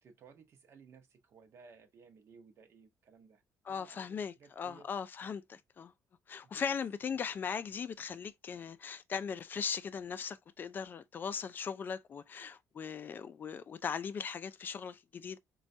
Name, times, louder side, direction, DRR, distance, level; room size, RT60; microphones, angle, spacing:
voice 1, 0.0-3.4 3.7-4.9 6.4-6.8, right 5 dB, 45° right, 0.7 m, -59 dB
voice 2, 3.6-5.9 6.3-15.4, left 6 dB, 30° left, 0.3 m, -39 dB
4.2 x 2.3 x 2.6 m
cardioid pair, 145°, 6 cm